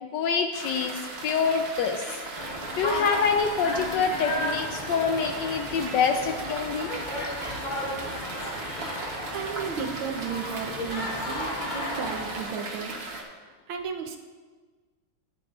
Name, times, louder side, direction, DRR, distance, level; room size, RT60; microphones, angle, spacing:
voice 1, 0.0-2.0 2.8-6.9 10.8-10.9, left 5 dB, 80° left, 6 dB, 1.0 m, -26 dB
sound 1, 0.5-13.2, right 2 dB, 45° right, 0.8 m, -38 dB
sound 2, 2.3-12.4, left 1 dB, 25° left, 1.0 m, -34 dB
voice 2, 9.3-13.0 13.7-14.2, right 6 dB, 75° right, 3 dB, 1.7 m, -34 dB
12.0 x 10.0 x 2.4 m, 1.4 s
omnidirectional pair, 2.4 m